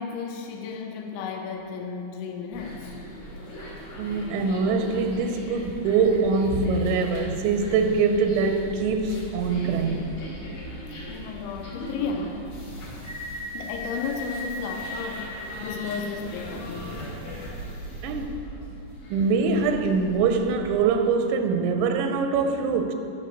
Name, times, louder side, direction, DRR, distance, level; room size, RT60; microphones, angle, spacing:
voice 1, 0.0-2.9 11.1-12.5 13.5-15.3 15.6-17.1, left 5 dB, 85° left, 3.0 m, -33 dB
sound 1, 2.5-20.8, equal, 55° left, 2.5 m, -38 dB
voice 2, 4.0-10.1 18.0-18.3 19.1-22.9, right 4 dB, 90° right, 3.1 m, -23 dB
8.9 x 6.3 x 6.4 m
omnidirectional pair, 5.3 m